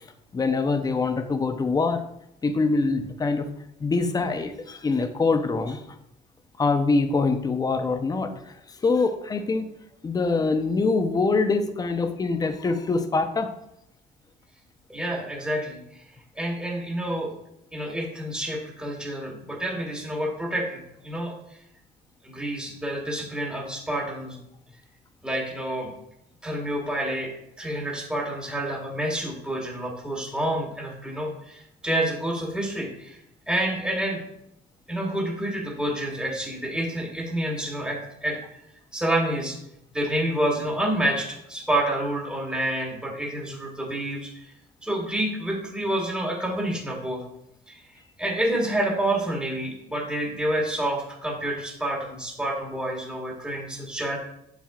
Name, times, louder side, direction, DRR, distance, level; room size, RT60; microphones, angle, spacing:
voice 1, 0.3-2.0 2.4-3.5 3.8-5.8 6.6-8.3 8.8-9.7 10.0-13.5, left 3 dB, 20° left, 8 dB, 0.6 m, -24 dB
voice 2, 14.9-16.0 16.3-17.3 17.7-21.6 22.2-24.4 25.2-25.9 26.4-27.3 27.6-33.2 33.5-34.2 34.9-38.6 38.9-39.6 39.9-44.5 44.8-47.2 47.7-54.2, right 1 dB, 5° right, 0 dB, 1.4 m, -28 dB
7.3 x 7.1 x 2.4 m, 0.80 s
cardioid pair, 110°, 17 cm